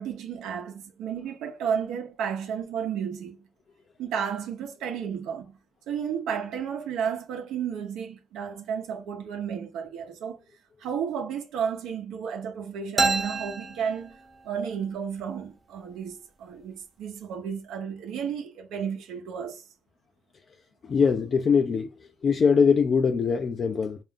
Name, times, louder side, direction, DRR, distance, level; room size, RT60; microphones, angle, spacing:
voice 1, 0.0-3.4 4.0-5.6 5.9-10.4 10.8-14.2 14.4-19.6, right 7 dB, 90° right, 0.8 m, -32 dB
sound 1, 13.0-14.7, right 3 dB, 25° right, 0.8 m, -28 dB
voice 2, 20.8-21.9 22.2-24.0, left 6 dB, 50° left, 0.4 m, -22 dB
3.5 x 2.5 x 3.5 m
cardioid pair, 90°, 0 cm